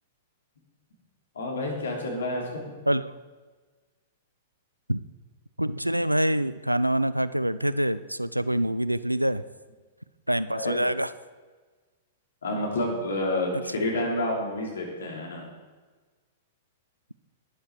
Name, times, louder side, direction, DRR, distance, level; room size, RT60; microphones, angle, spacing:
voice 1, 1.3-2.7 10.5-10.7 12.4-15.5, left 1 dB, 65° left, -1 dB, 3.1 m, -29 dB
voice 2, 5.6-9.4 10.3-11.1, right 1 dB, 90° right, 16 dB, 0.4 m, -25 dB
11.5 x 10.0 x 4.6 m, 1.4 s
figure-of-eight pair, 100°, 0 cm